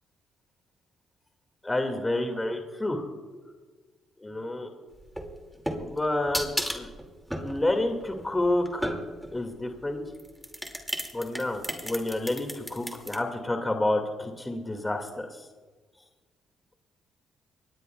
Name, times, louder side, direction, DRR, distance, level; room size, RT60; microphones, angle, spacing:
voice 1, 1.6-3.1 4.2-4.7 5.8-6.9 7.4-9.0 9.3-10.0 11.1-15.3, left 1 dB, 15° left, 3 dB, 2.1 m, -29 dB
sound 1, 5.0-9.4 10.1-13.2, equal, 5° right, 2.3 m, -34 dB
23.5 x 19.0 x 2.3 m, 1.4 s
cardioid pair, 90°, 0 cm